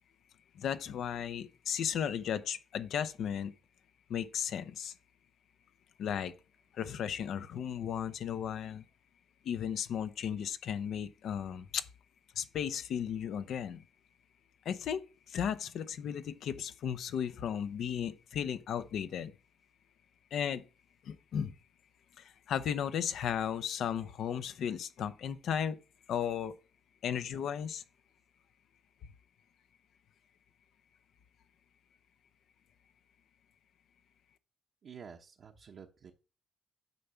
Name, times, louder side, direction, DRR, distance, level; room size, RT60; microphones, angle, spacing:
voice 1, 0.5-3.5 4.1-4.9 6.0-6.3 6.7-8.8 9.4-11.8 12.4-13.8 14.6-15.0 15.3-19.3 20.3-20.6 21.0-21.5 22.2-25.8 26.1-26.5 27.0-27.8, left 8 dB, 70° left, 0.8 m, -35 dB
voice 2, 34.8-36.1, right 7 dB, 55° right, 1.0 m, -50 dB
9.3 x 3.4 x 6.9 m
cardioid pair, 90°, 0 cm